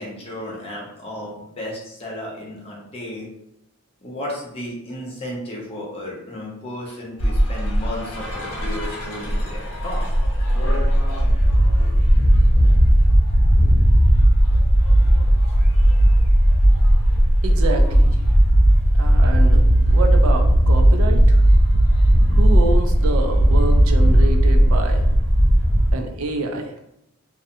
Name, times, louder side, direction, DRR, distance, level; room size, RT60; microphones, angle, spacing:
voice 1, 0.0-3.3 4.0-10.1 15.0-15.1, left 1 dB, 25° left, -3 dB, 0.6 m, -33 dB
sound 1, 7.2-25.9, equal, 80° left, 0.6 m, -16 dB
voice 2, 17.4-18.2 19.0-19.6 19.9-21.4 22.3-25.0 25.9-26.7, right 2 dB, 70° right, 5 dB, 0.3 m, -27 dB
2.5 x 2.1 x 2.6 m, 0.81 s
head